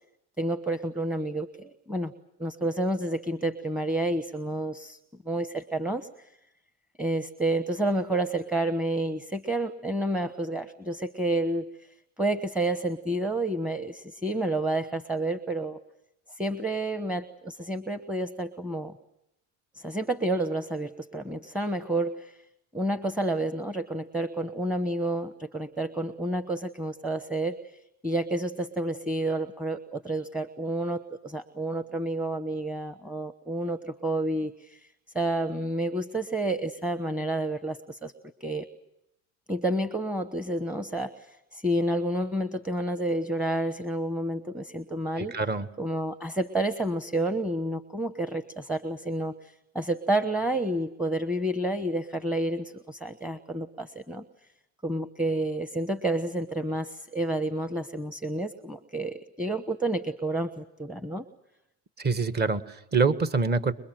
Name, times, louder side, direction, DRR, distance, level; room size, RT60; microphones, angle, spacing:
voice 1, 0.4-2.1 2.4-5.0 5.2-6.1 7.0-11.7 12.2-15.8 16.3-19.0 19.7-22.3 22.7-27.6 28.0-34.8 35.1-38.1 38.4-38.7 39.5-45.3 45.8-54.2 54.8-61.2, right 1 dB, 5° right, 10 dB, 1.1 m, -29 dB
voice 2, 45.2-45.7 62.0-63.7, right 4 dB, 25° right, 11 dB, 1.6 m, -25 dB
26.5 x 23.0 x 7.7 m, 0.85 s
supercardioid pair, 100°, 36 cm